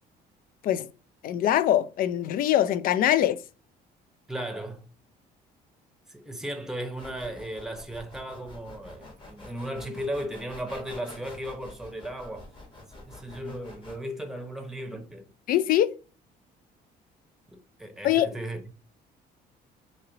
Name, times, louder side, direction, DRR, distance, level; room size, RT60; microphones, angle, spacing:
voice 1, 1.2-3.4 15.5-15.9 18.0-18.3, left 12 dB, 60° left, 0.4 m, -23 dB
voice 2, 4.3-4.9 6.1-12.5 12.9-15.3 17.5-18.7, right 1 dB, 5° right, 0.8 m, -36 dB
sound 1, 7.0-14.0, left 2 dB, 30° left, 1.3 m, -47 dB
3.0 x 2.8 x 3.9 m
cardioid pair, 110°, 17 cm